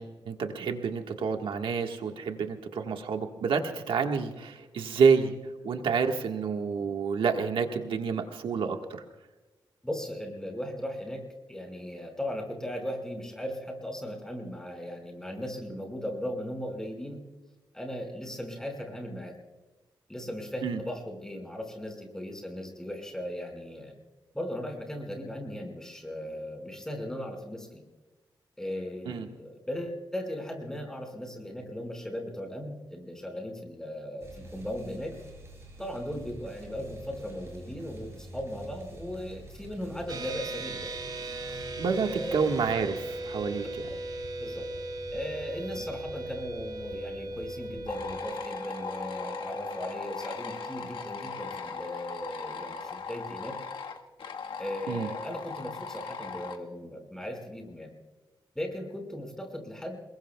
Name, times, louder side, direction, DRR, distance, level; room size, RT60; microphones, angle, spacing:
voice 1, 0.0-5.3 5.6-9.0 20.6-20.8 29.0-29.3 41.8-43.6 54.9-55.1, right 5 dB, 90° right, 4 dB, 1.5 m, -28 dB
voice 2, 9.8-11.2 11.5-17.2 17.7-19.3 20.1-23.9 24.3-27.8 28.6-35.2 35.8-40.9 42.0-42.6 44.4-44.7 45.1-53.6 54.6-57.9 58.6-60.0, equal, 5° left, 2 dB, 5.2 m, -37 dB
sound 1, 34.2-48.2, right 1 dB, 30° right, 7.6 m, -48 dB
sound 2, 40.1-53.7, right 2 dB, 50° right, 4.2 m, -39 dB
sound 3, 47.9-56.6, left 5 dB, 85° left, 1.4 m, -39 dB
28.5 x 21.5 x 2.3 m, 1.2 s
wide cardioid pair, 125°, 9 cm